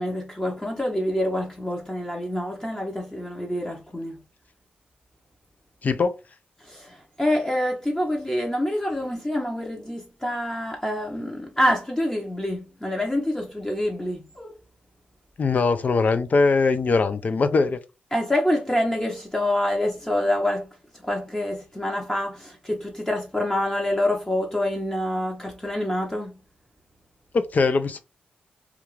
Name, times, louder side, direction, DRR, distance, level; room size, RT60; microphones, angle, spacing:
voice 1, 0.0-4.2 6.6-14.5 18.1-20.7 21.0-26.4, left 1 dB, 15° left, 0.8 m, -26 dB
voice 2, 5.8-6.1 15.4-17.8 27.3-28.0, left 4 dB, 50° left, 0.4 m, -21 dB
2.4 x 2.3 x 3.1 m
cardioid pair, 55°, 3 cm